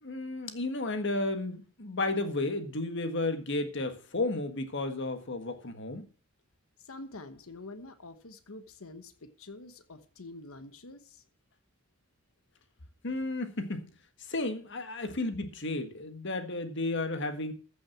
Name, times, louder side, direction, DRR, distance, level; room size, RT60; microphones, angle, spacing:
voice 1, 0.0-6.1 13.0-13.9 14.2-17.5, left 2 dB, 60° left, 1.7 m, -33 dB
voice 2, 6.8-11.2, left 2 dB, 85° left, 1.1 m, -47 dB
14.5 x 6.2 x 6.0 m
head